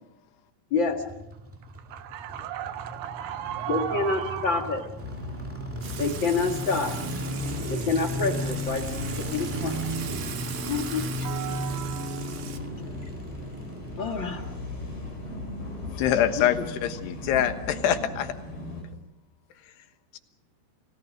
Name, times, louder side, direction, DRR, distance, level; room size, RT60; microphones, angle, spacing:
voice 1, 0.7-1.0 3.7-4.8 6.0-6.9 7.7-8.8 9.2-9.8 10.7-11.0 14.0-14.4 16.4-16.6, left 4 dB, 40° left, 3 dB, 2.0 m, -27 dB
sound 1, 0.8-16.0 16.3-16.4, equal, 10° right, 0.6 m, -35 dB
voice 2, 1.8-4.9 5.5-5.7 11.2-12.7, right 10 dB, 80° right, 10 dB, 3.2 m, -36 dB
sound 2, 5.0-18.8, left 1 dB, 60° left, 9.7 m, -39 dB
Water / Water tap faucet / Sink (filling or washing), 5.8-12.6, right 8 dB, 60° right, 2.7 m, -40 dB
voice 3, 15.9-18.3 20.1-20.2, left 10 dB, 85° left, 8 dB, 3.5 m, -25 dB
29.5 x 17.5 x 6.5 m, 0.90 s
omnidirectional pair, 4.7 m